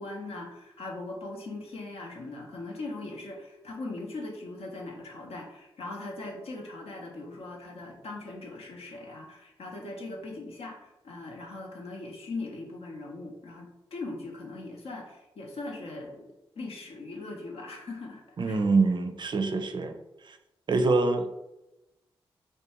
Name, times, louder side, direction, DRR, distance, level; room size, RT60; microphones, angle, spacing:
voice 1, 0.0-16.3 16.6-18.6, left 2 dB, 75° left, 0 dB, 0.6 m, -40 dB
voice 2, 18.4-19.9 20.2-20.4 20.7-21.3, right 3 dB, 50° right, 6 dB, 0.4 m, -25 dB
2.5 x 2.1 x 2.9 m, 0.94 s
supercardioid pair, 40°, 10 cm